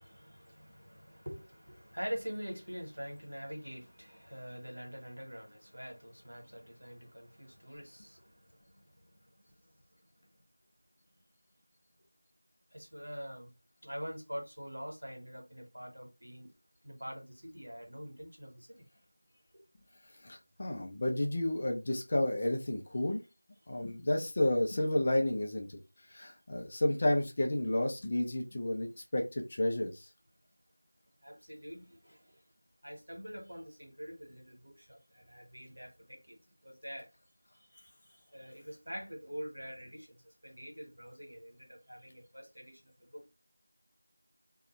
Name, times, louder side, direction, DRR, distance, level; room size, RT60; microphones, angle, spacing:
voice 1, 0.0-8.8 12.7-13.5 13.8-16.5 16.8-18.9 19.5-19.6 31.2-32.4 32.8-36.4 36.6-37.1 37.7-43.2, equal, 75° right, 1.4 m, -45 dB
voice 2, 20.2-23.2 23.7-25.8 26.1-30.1, left 1 dB, 20° left, 0.3 m, -31 dB
2.5 x 2.1 x 3.2 m
figure-of-eight pair, 175°, 0 cm